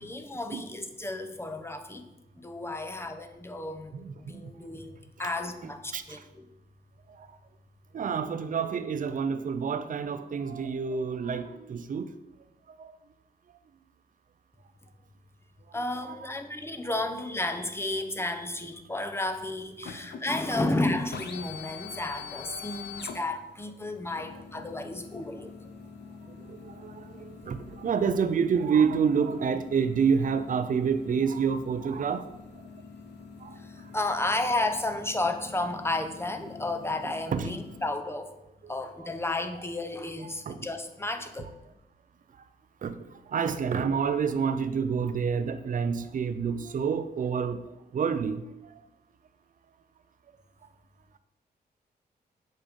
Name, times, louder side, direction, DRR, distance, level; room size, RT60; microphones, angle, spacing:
voice 1, 0.0-2.1 2.3-6.4 15.7-25.6 33.5-38.3 38.7-41.5, left 2 dB, 15° left, 7 dB, 0.8 m, -32 dB
voice 2, 3.9-4.5 5.9-6.2 7.2-7.3 7.9-12.1 12.8-12.9 15.7-15.8 16.1-16.2 19.8-19.9 22.5-22.6 26.4-32.3 33.4-33.6 37.3-37.6 38.6-38.7 39.0-39.1 40.5-40.6 42.8-43.0 43.3-47.6 47.9-48.7, right 6 dB, 50° right, 10 dB, 0.6 m, -28 dB
sound 1, 19.3-37.9, left 6 dB, 80° left, 0.8 m, -45 dB
7.4 x 5.2 x 5.2 m, 0.95 s
cardioid pair, 100°, 18 cm